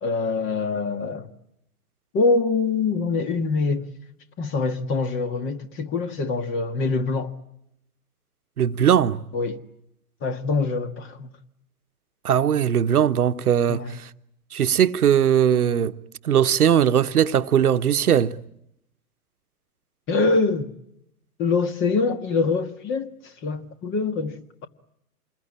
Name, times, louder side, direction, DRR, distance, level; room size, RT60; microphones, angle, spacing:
voice 1, 0.0-1.3 2.1-3.9 4.4-7.4 9.3-9.6 10.2-11.3 13.7-14.0 20.1-20.7 21.4-24.7, left 4 dB, 25° left, 1.8 m, -24 dB
voice 2, 8.6-9.2 12.2-14.1 14.5-16.0 16.2-18.4, right 9 dB, 80° right, 1.1 m, -19 dB
27.0 x 21.5 x 9.9 m
hypercardioid pair, 120°, 44 cm